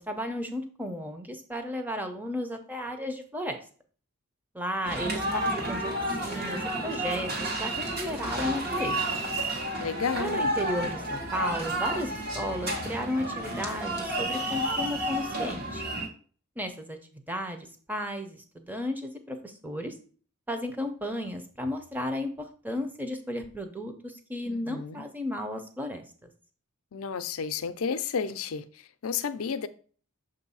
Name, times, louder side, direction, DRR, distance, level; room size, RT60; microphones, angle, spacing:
voice 1, 0.0-3.6 4.5-5.9 6.2-9.0 10.2-15.8 16.6-19.9 20.5-26.3, equal, 10° right, 0.7 m, -34 dB
sound 1, 4.8-16.1, right 1 dB, 45° right, 1.3 m, -31 dB
voice 2, 9.8-10.5 24.4-25.0 26.9-29.7, left 6 dB, 70° left, 0.5 m, -32 dB
6.6 x 2.7 x 5.4 m
head